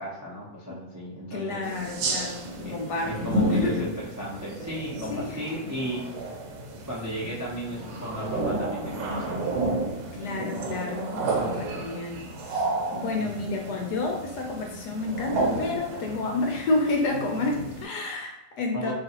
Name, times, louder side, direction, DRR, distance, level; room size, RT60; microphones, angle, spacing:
voice 1, 0.0-1.6 2.6-6.3 6.9-9.6 13.2-13.4 18.7-18.9, equal, 25° right, -6 dB, 0.4 m, -35 dB
voice 2, 1.3-3.8 5.1-5.4 10.1-18.9, left 2 dB, 70° left, 1 dB, 1.2 m, -30 dB
sound 1, 1.6-17.8, right 1 dB, 70° right, 1.2 m, -31 dB
4.0 x 3.0 x 2.9 m, 0.90 s
omnidirectional pair, 2.0 m